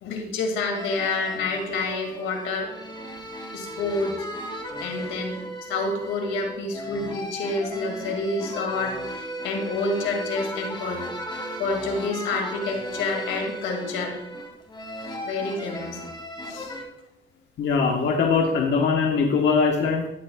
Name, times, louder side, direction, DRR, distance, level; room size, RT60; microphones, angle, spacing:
voice 1, 0.0-2.7 3.5-4.3 4.8-5.4 5.7-11.0 11.6-14.2 15.2-16.0 16.4-16.7, left 3 dB, 90° left, 2 dB, 2.4 m, -28 dB
sound 1, 0.7-16.8, equal, 25° left, 2.5 m, -36 dB
voice 2, 17.6-20.1, left 5 dB, 65° left, 0 dB, 1.3 m, -21 dB
14.0 x 10.5 x 2.4 m, 0.88 s
cardioid pair, 90°, 20 cm